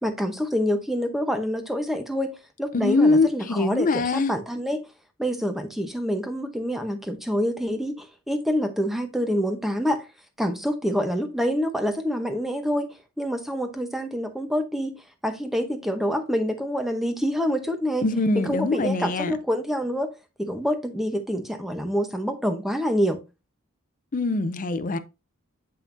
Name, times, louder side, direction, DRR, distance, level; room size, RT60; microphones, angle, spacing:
voice 1, 0.0-2.3 2.6-4.8 5.2-10.0 10.4-12.9 13.2-14.9 15.2-18.1 18.4-20.1 20.4-23.2, equal, ahead, 0.8 m, -26 dB
voice 2, 2.7-4.3 18.0-19.4 24.1-25.0, left 3 dB, 35° left, 0.5 m, -23 dB
7.5 x 5.6 x 2.6 m
head